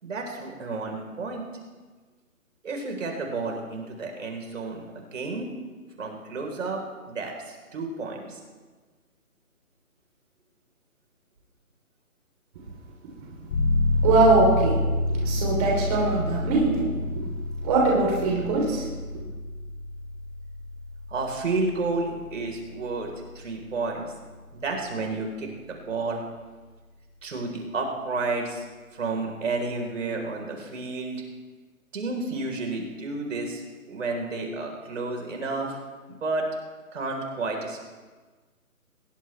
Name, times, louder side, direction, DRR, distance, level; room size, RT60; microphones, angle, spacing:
voice 1, 0.0-1.5 2.6-5.5 6.0-8.4 21.1-24.1 24.5-26.2 27.2-28.6 28.9-31.2 31.9-33.6 33.9-35.8 36.1-36.5 36.9-37.8, right 3 dB, 55° right, 2 dB, 4.3 m, -31 dB
sound 1, 13.5-24.0, left 1 dB, 35° left, 7.3 m, -28 dB
voice 2, 14.0-14.8 15.1-16.9 17.2-17.3 17.6-18.8, right 3 dB, 25° right, -2 dB, 3.6 m, -22 dB
22.0 x 19.5 x 3.4 m, 1.3 s
figure-of-eight pair, 155°, 44 cm